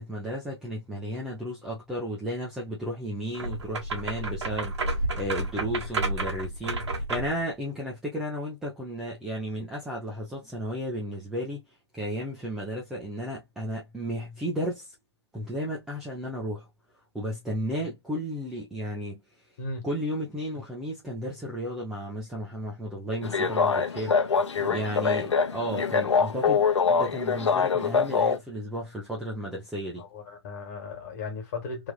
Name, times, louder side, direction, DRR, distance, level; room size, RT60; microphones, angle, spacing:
voice 1, 0.0-11.6 11.9-14.9 15.3-16.7 17.1-19.2 19.8-30.0, equal, 5° right, 0.4 m, -34 dB
sound 1, 3.3-7.4, right 2 dB, 70° right, 1.2 m, -31 dB
sound 2, 23.2-28.4, left 5 dB, 80° left, 0.7 m, -24 dB
voice 2, 24.5-25.0 30.0-31.9, left 3 dB, 35° left, 1.5 m, -37 dB
3.3 x 2.3 x 2.2 m
hypercardioid pair, 155°, 15 cm